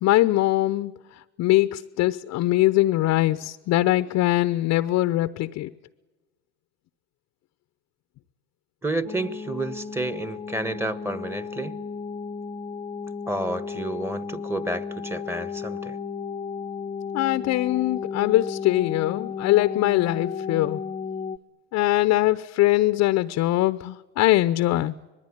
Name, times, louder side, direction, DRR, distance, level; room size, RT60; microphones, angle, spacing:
voice 1, 0.0-0.9 1.4-5.7 17.1-20.8 21.7-24.9, left 16 dB, 50° left, 0.8 m, -22 dB
voice 2, 8.8-11.7 13.3-16.0, right 1 dB, 5° right, 1.5 m, -30 dB
sound 1, 9.1-21.4, left 6 dB, 20° left, 0.8 m, -34 dB
25.0 x 21.0 x 10.0 m
hypercardioid pair, 90°, 33 cm